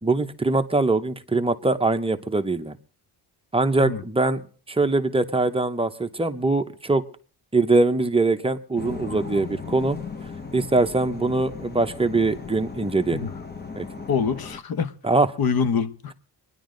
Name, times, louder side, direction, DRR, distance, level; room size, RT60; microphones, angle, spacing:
voice 1, 0.0-2.8 3.5-4.4 4.7-7.0 7.5-10.0 10.5-13.3 13.8-13.9 15.0-15.3, right 3 dB, 15° right, 7 dB, 0.8 m, -22 dB
sound 1, 8.8-14.6, left 5 dB, 25° left, 1.1 m, -37 dB
voice 2, 14.1-14.9 15.4-16.1, left 6 dB, 60° left, 12 dB, 1.2 m, -25 dB
25.5 x 10.5 x 3.9 m, 0.43 s
wide cardioid pair, 135°, 42 cm